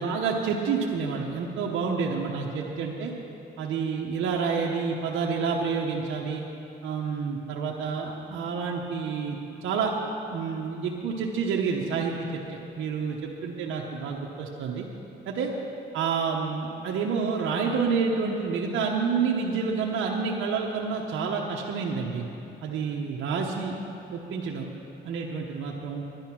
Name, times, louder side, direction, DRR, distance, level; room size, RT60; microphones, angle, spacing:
voice 1, 0.0-3.1 3.6-6.4 6.8-9.9 10.3-14.9 15.3-15.5 15.9-22.2 22.6-23.8 24.1-24.7 25.0-26.0, right 5 dB, 80° right, -1 dB, 1.0 m, -29 dB
11.5 x 10.5 x 6.0 m, 2.8 s
cardioid pair, 90°, 20 cm